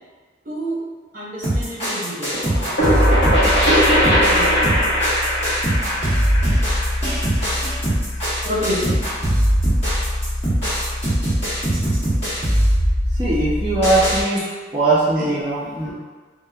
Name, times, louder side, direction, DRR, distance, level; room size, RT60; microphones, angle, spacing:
voice 1, 0.4-0.8 1.1-2.7 3.5-5.0 8.4-9.0 15.2-15.5, equal, 45° right, -7 dB, 0.7 m, -28 dB
sound 1, 1.4-14.2, equal, 30° left, 1.1 m, -21 dB
sound 2, 2.3-7.9, equal, 60° left, 0.8 m, -20 dB
voice 2, 13.2-14.4 14.7-15.9, right 2 dB, 20° right, -11 dB, 0.4 m, -20 dB
2.9 x 2.1 x 2.3 m, 1.4 s
head